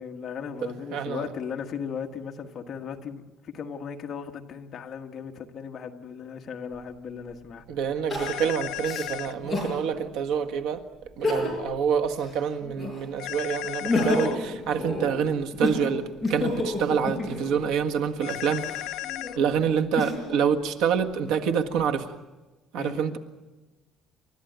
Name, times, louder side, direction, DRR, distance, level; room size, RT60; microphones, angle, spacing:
voice 1, 0.0-3.2 3.5-7.6 11.2-11.6 14.7-14.8 22.7-23.1, left 6 dB, 35° left, 1.5 m, -37 dB
voice 2, 0.9-1.3 7.7-10.8 11.2-18.7 19.3-22.1 22.7-23.2, right 7 dB, 80° right, 1.6 m, -27 dB
Crying sobbing, 6.7-6.8 8.1-9.8 10.3-10.4 11.1-11.8 12.1-13.2 13.6-17.6 18.3-20.4 21.0-21.8, left 2 dB, 5° right, 6.1 m, -30 dB
sound 1, 8.2-9.3 13.2-14.3 18.2-19.4, left 16 dB, 65° left, 0.7 m, -34 dB
29.5 x 13.5 x 9.3 m
cardioid pair, 180°, 0 cm